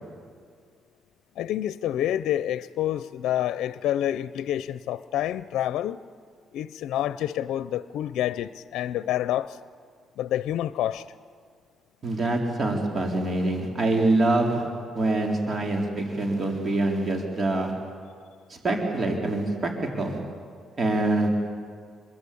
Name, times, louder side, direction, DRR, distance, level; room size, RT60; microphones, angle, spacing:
voice 1, 1.4-6.0 6.5-9.6 10.2-11.0, left 12 dB, 85° left, 0.6 m, -28 dB
voice 2, 12.0-14.7 14.9-17.7 18.5-19.7 20.0-20.2 20.8-21.3, right 2 dB, 40° right, 4.1 m, -25 dB
28.0 x 22.0 x 8.6 m
cardioid pair, 90°, 0 cm